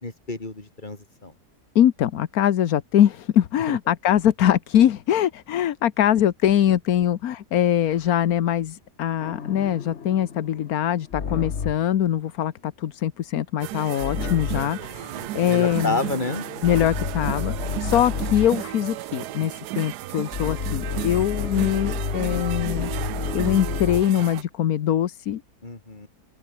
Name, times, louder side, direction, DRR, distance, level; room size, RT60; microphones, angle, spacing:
voice 1, 0.0-1.3 3.7-3.8 14.6-16.4 25.6-26.1, left 2 dB, 30° left, 3.3 m, -30 dB
voice 2, 1.7-16.0 16.6-22.9 23.3-25.4, left 10 dB, 70° left, 1.3 m, -22 dB
sound 1, 9.2-12.0 14.0-14.8 15.7-18.7 20.3-24.2, left 6 dB, 45° left, 1.5 m, -30 dB
sound 2, 13.6-24.4, right 15 dB, 85° right, 1.2 m, -34 dB
open air
omnidirectional pair, 1.7 m